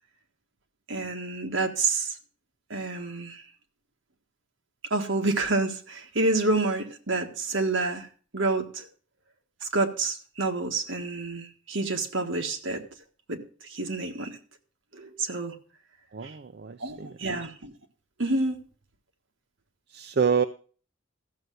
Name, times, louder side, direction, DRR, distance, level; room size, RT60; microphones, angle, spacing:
voice 1, 0.9-2.2 2.7-3.4 4.9-8.9 9.6-12.9 13.3-14.4 14.9-15.6 16.2-16.3 16.8-17.7 18.2-18.6, right 3 dB, 70° right, 5 dB, 1.6 m, -28 dB
voice 2, 16.1-17.2 19.9-20.4, right 6 dB, 50° right, 10 dB, 0.5 m, -27 dB
14.0 x 6.8 x 6.2 m, 0.40 s
head